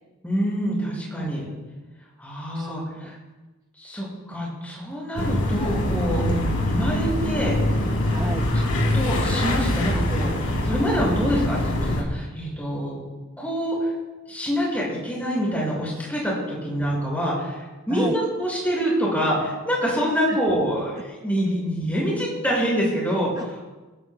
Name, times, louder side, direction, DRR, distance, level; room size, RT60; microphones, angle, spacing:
voice 1, 0.2-1.5 2.2-3.1 3.8-6.2 6.7-7.6 8.5-8.7 8.9-13.0 13.4-13.9 14.3-23.6, equal, 5° left, -5 dB, 5.5 m, -26 dB
voice 2, 2.5-3.2 6.2-6.6 8.1-8.4 17.9-18.2 20.3-20.4 23.4-23.6, right 1 dB, 15° right, 5 dB, 0.4 m, -32 dB
sound 1, 5.2-12.0, left 1 dB, 75° left, 2.6 m, -23 dB
21.5 x 16.0 x 2.2 m, 1.2 s
head